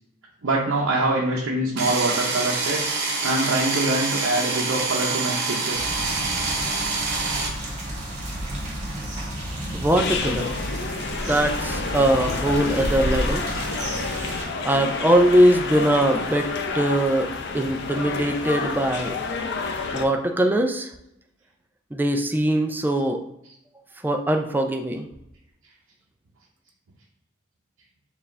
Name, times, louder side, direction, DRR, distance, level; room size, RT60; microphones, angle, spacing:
voice 1, 0.4-2.8 3.2-5.9, right 2 dB, 85° right, -3 dB, 0.6 m, -24 dB
sound 1, 1.8-7.5, right 3 dB, 55° right, 0.8 m, -26 dB
sound 2, 5.7-14.4, right 1 dB, 35° right, 1.4 m, -32 dB
voice 2, 9.7-10.5 11.1-13.4 14.6-16.5 16.7-17.3 17.5-19.1 19.9-20.9 21.9-23.2 24.0-25.1, right 1 dB, 10° right, 4 dB, 0.3 m, -21 dB
sound 3, 10.0-20.1, left 3 dB, 55° left, 0.5 m, -29 dB
4.7 x 2.4 x 3.2 m, 0.82 s
head